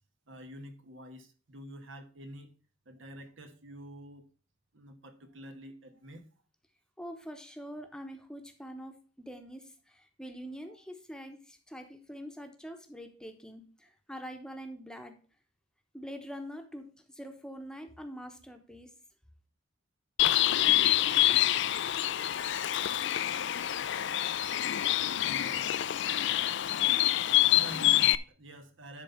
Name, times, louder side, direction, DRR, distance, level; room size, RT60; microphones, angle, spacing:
voice 1, 0.3-2.5 2.8-4.2 4.7-6.3 10.7-10.8 22.5-22.6 25.2-26.9 27.5-29.0, right 1 dB, 75° right, 7 dB, 1.4 m, -48 dB
voice 2, 7.0-15.1 15.9-18.9, equal, 5° left, 5 dB, 1.0 m, -44 dB
Bird, 20.2-28.2, left 13 dB, 60° left, 0.4 m, -26 dB
10.5 x 4.2 x 5.6 m, 0.37 s
head